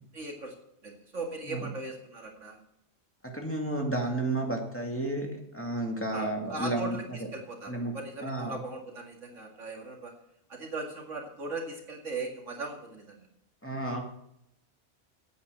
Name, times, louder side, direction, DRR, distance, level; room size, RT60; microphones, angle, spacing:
voice 1, 0.1-0.6 0.8-2.6 6.1-10.1 10.5-13.3, right 3 dB, 80° right, 1 dB, 2.5 m, -39 dB
voice 2, 3.3-7.2 7.7-7.9 8.2-8.6 13.6-14.0, right 2 dB, 10° left, 0 dB, 2.1 m, -32 dB
9.0 x 9.0 x 7.5 m, 0.77 s
omnidirectional pair, 1.3 m